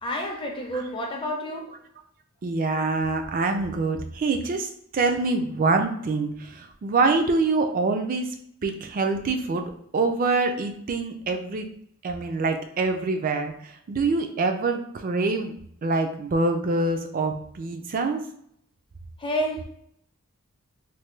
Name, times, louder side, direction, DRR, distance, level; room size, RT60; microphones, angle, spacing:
voice 1, 0.0-1.8 19.2-19.6, equal, 25° left, 1 dB, 0.5 m, -29 dB
voice 2, 2.4-8.3 8.6-9.6 9.9-11.7 12.0-18.2, right 3 dB, 40° right, 6 dB, 0.4 m, -25 dB
3.2 x 2.2 x 3.1 m, 0.68 s
head